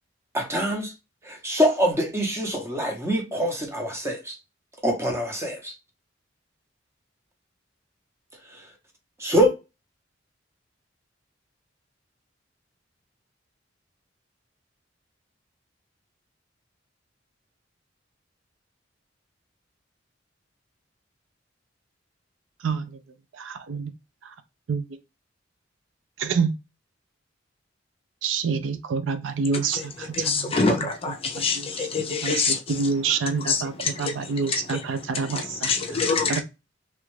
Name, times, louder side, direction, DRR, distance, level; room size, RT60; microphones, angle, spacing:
voice 1, 0.3-0.9 1.3-4.3 4.8-5.7 9.2-9.5, equal, 15° right, 0.8 m, -24 dB
voice 2, 22.6-23.0 23.3-23.9 24.7-24.8 26.2-26.5 28.2-30.5 31.4-31.9 32.2-36.0 36.3-36.4, right 5 dB, 85° right, 0.4 m, -27 dB
voice 3, 30.1-32.8 33.4-34.8 35.2-36.4, left 4 dB, 30° left, 0.5 m, -26 dB
3.1 x 2.4 x 3.1 m
head